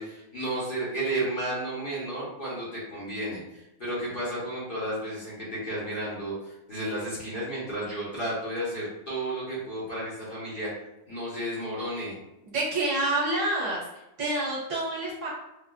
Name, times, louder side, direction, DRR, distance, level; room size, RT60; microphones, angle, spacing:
voice 1, 0.0-3.4 3.8-10.7 11.1-12.2, right 1 dB, 40° left, -9 dB, 1.1 m, -32 dB
voice 2, 12.5-13.8 14.2-15.3, right 2 dB, 55° right, -5 dB, 1.1 m, -27 dB
3.8 x 2.4 x 2.4 m, 0.90 s
omnidirectional pair, 1.6 m